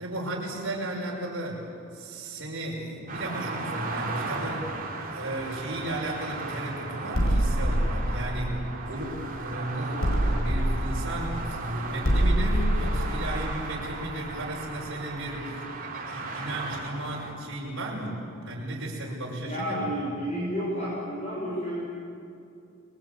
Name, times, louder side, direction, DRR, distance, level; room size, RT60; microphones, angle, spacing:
voice 1, 0.0-1.6 1.9-4.8 5.1-8.6 8.9-15.6 16.1-18.2 18.4-19.9, right 1 dB, 60° right, -5 dB, 6.3 m, -34 dB
sound 1, 3.1-17.3, right 3 dB, 45° right, 3.9 m, -36 dB
sound 2, 7.1-9.5 10.0-14.7, equal, 80° left, 5.2 m, -26 dB
voice 2, 19.5-21.8, equal, 35° left, -5 dB, 5.8 m, -31 dB
28.5 x 21.5 x 8.9 m, 2.5 s
head